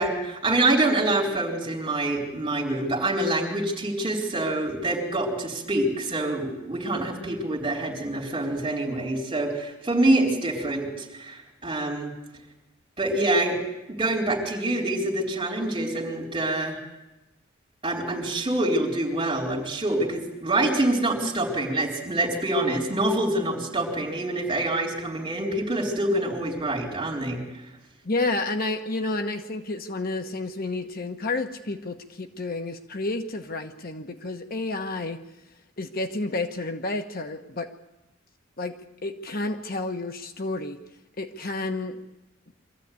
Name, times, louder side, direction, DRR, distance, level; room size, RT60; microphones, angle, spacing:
voice 1, 0.0-12.1 13.0-13.6 13.9-16.8 17.8-27.4, right 1 dB, 25° right, -1 dB, 4.5 m, -26 dB
voice 2, 28.0-35.2 35.8-37.7 38.6-40.8 41.2-42.0, left 2 dB, 45° left, 7 dB, 1.2 m, -30 dB
24.0 x 14.5 x 9.6 m, 0.98 s
head